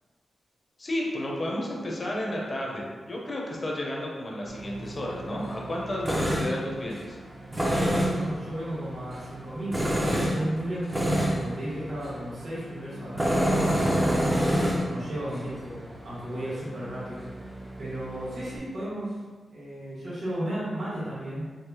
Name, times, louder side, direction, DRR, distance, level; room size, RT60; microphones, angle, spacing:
voice 1, 0.8-7.2, left 1 dB, 30° left, -2 dB, 0.6 m, -32 dB
Tools, 4.5-18.6, equal, 15° right, 0.5 m, -29 dB
voice 2, 7.9-13.5 13.9-19.2 19.5-21.5, right 1 dB, 60° right, -11 dB, 1.4 m, -35 dB
4.8 x 2.0 x 2.9 m, 1.5 s
wide cardioid pair, 145°, 0 cm